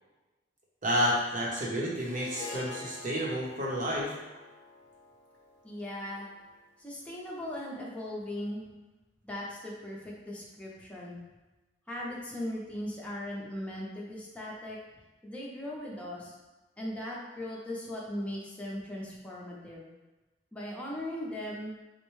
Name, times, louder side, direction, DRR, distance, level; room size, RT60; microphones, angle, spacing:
voice 1, 0.8-4.1, equal, 45° right, -3 dB, 0.8 m, -30 dB
Harp, 2.0-6.4, left 3 dB, 65° left, 0.7 m, -46 dB
voice 2, 5.6-6.3 6.8-8.7 9.2-11.2 11.9-14.8 15.2-16.4 16.8-19.9 20.5-21.7, left 1 dB, 5° left, -5 dB, 0.6 m, -38 dB
4.3 x 2.2 x 3.1 m, 1.1 s
head